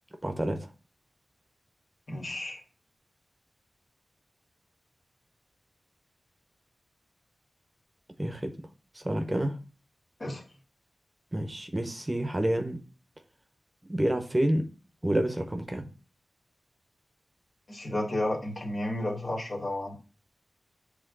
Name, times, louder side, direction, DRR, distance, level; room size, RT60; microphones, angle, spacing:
voice 1, 0.2-0.7 8.2-8.7 8.9-9.6 11.3-12.8 13.9-14.7 15.0-15.9, right 1 dB, 25° right, 6 dB, 1.0 m, -29 dB
voice 2, 2.1-2.6 10.2-10.4 17.7-20.0, left 1 dB, 50° left, 0 dB, 2.2 m, -32 dB
7.5 x 3.5 x 3.9 m, 0.35 s
cardioid pair, 55°, 0 cm